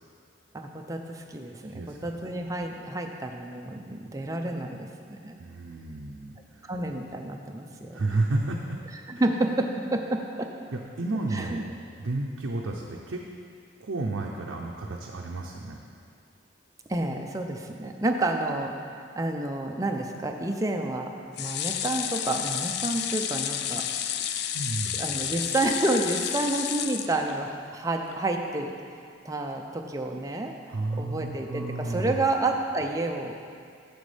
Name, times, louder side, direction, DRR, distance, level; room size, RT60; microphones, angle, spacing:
voice 1, 0.5-5.4 6.6-8.1 9.1-10.5 11.3-11.6 16.9-21.1 21.4-23.8 25.0-28.7 29.2-33.3, right 2 dB, 15° right, 3 dB, 0.5 m, -30 dB
voice 2, 1.7-2.1 5.4-6.6 7.9-8.8 10.7-11.7 12.0-13.2 13.8-15.8 24.5-25.0 30.7-32.3, right 2 dB, 70° right, -1 dB, 0.5 m, -31 dB
sound 1, 21.4-27.7 28.1-28.2 28.5-28.6, left 10 dB, 55° left, 0.3 m, -31 dB
9.3 x 6.9 x 3.3 m, 2.3 s
head